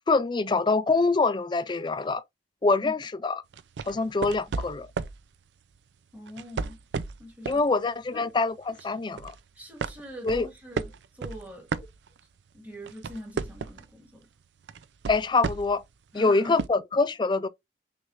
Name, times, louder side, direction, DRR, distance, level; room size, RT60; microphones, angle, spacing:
voice 1, 0.1-2.2 2.6-3.4 3.8-4.9 7.5-9.4 10.2-10.5 15.1-15.8 16.1-17.5, left 3 dB, 25° left, 0.4 m, -25 dB
sound 1, 3.5-5.2 6.3-7.7 8.1-8.3 8.8-9.4 9.8-12.4 12.7-13.9 14.7-15.8 16.6-16.7, right 4 dB, 85° right, 0.4 m, -33 dB
voice 2, 6.1-6.8 7.2-7.6 8.1-8.3 9.6-11.7 12.5-14.3 16.1-16.6, equal, 10° right, 1.7 m, -42 dB
6.3 x 3.3 x 2.5 m
head